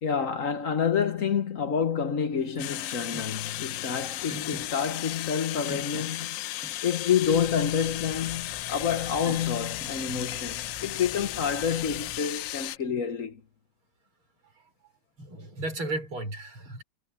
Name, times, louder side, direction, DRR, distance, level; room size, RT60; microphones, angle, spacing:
voice 1, 0.0-6.4 6.8-13.4, left 7 dB, 45° left, 1.3 m, -28 dB
sound 1, 2.4-12.0, equal, ahead, 2.8 m, -49 dB
sound 2, 2.6-12.8, left 16 dB, 75° left, 1.1 m, -35 dB
sound 3, 7.2-12.2, left 4 dB, 20° left, 1.1 m, -45 dB
voice 2, 15.2-16.8, right 2 dB, 75° right, 7.5 m, -35 dB
omnidirectional pair, 2.3 m